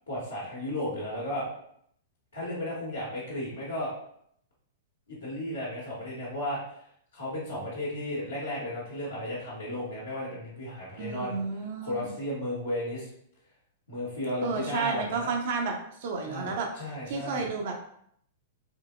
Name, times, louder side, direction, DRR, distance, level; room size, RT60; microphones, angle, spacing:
voice 1, 0.1-1.5 2.3-3.9 5.1-6.6 7.1-11.4 11.8-13.1 13.9-15.3 16.3-17.5, left 1 dB, 75° left, -7 dB, 1.2 m, -34 dB
voice 2, 11.0-12.1 14.4-15.7 16.0-16.7 17.1-17.7, right 4 dB, 50° right, 2 dB, 0.5 m, -31 dB
3.7 x 2.8 x 2.3 m, 0.68 s
figure-of-eight pair, 100°, 0 cm